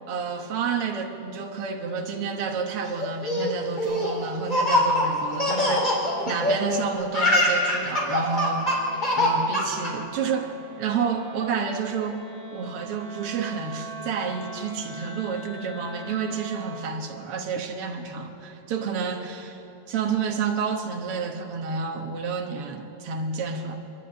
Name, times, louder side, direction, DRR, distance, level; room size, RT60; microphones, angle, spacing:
voice 1, 0.1-12.2 12.5-19.6 19.9-23.7, right 5 dB, 90° right, 3 dB, 1.2 m, -30 dB
Laughter, 3.0-6.8 7.0-9.9, left 1 dB, 15° left, 2.7 m, -23 dB
Wind instrument woodwind instrument, 5.4-16.9, right 2 dB, 55° right, 5.2 m, -42 dB
26.5 x 11.5 x 8.9 m, 2.9 s
omnidirectional pair, 4.5 m